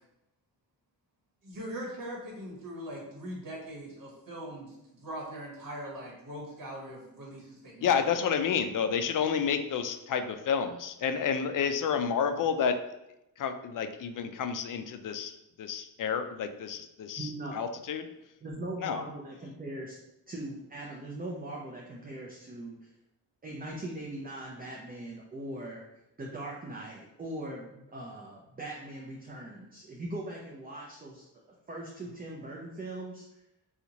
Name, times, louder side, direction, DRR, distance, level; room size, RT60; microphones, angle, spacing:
voice 1, 1.4-7.9, equal, 50° right, -3 dB, 1.2 m, -41 dB
voice 2, 7.8-12.8 13.4-15.3 15.6-18.1 18.8-19.0, left 7 dB, 50° left, 8 dB, 0.4 m, -30 dB
voice 3, 17.2-17.7 18.4-20.0 20.3-22.9 23.4-25.8 26.2-31.3 31.7-33.2, right 1 dB, 20° right, -3 dB, 0.5 m, -40 dB
2.8 x 2.4 x 3.9 m, 0.87 s
cardioid pair, 70°, 41 cm